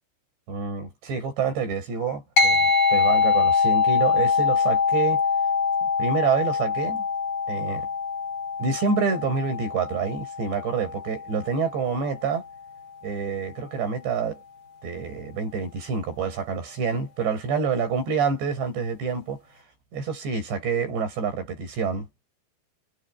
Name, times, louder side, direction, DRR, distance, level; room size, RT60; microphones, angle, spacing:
voice 1, 0.5-5.2 5.8-7.1 7.5-7.9 8.6-12.4 13.0-14.4 14.8-19.4 19.9-22.3, right 5 dB, 70° right, 9.7 m, -27 dB
sound 1, 2.4-12.1, left 5 dB, 45° left, 1.6 m, -24 dB
omnidirectional pair, 5.2 m